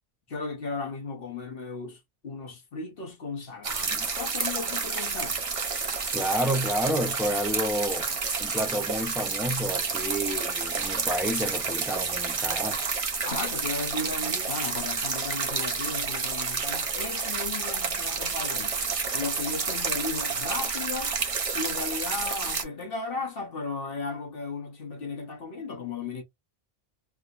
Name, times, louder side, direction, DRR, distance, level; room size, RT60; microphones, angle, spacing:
voice 1, 0.3-5.4 13.2-21.2 21.5-26.2, left 4 dB, 65° left, 1.1 m, -35 dB
sound 1, 3.6-22.6, right 5 dB, 40° right, 0.7 m, -30 dB
voice 2, 6.1-8.1 8.4-12.8, equal, ahead, 0.5 m, -30 dB
3.5 x 2.8 x 2.4 m
omnidirectional pair, 1.0 m